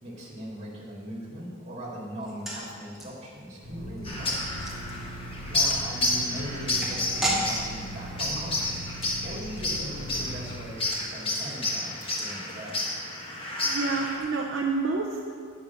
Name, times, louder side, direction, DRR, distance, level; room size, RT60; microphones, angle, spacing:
voice 1, 0.0-4.5 5.5-8.8 9.2-12.9, right 1 dB, 30° right, -4 dB, 2.1 m, -39 dB
sound 1, 2.2-13.4 13.7-13.8 14.1-14.2, right 1 dB, ahead, 1.3 m, -38 dB
sound 2, 3.6-10.6, right 1 dB, 75° left, 1.9 m, -40 dB
sound 3, 4.0-14.2, left 2 dB, 25° left, 1.3 m, -31 dB
voice 2, 13.6-15.2, right 4 dB, 55° right, -2 dB, 0.7 m, -28 dB
9.4 x 5.3 x 7.0 m, 2.2 s
head